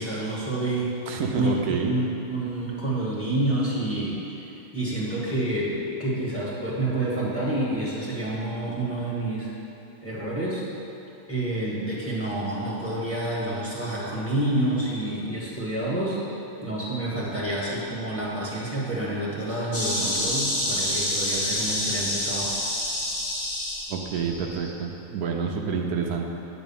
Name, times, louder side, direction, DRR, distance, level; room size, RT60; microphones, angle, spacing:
voice 1, 0.0-0.9 1.3-9.5 10.0-10.6 11.3-16.2 16.6-22.5, right 1 dB, 10° left, -7 dB, 1.8 m, -28 dB
voice 2, 1.1-1.9 23.9-26.2, right 6 dB, 80° right, 1 dB, 1.2 m, -28 dB
Insect, 19.7-24.7, left 1 dB, 60° left, 1.9 m, -28 dB
9.1 x 4.1 x 7.2 m, 2.9 s
omnidirectional pair, 1.6 m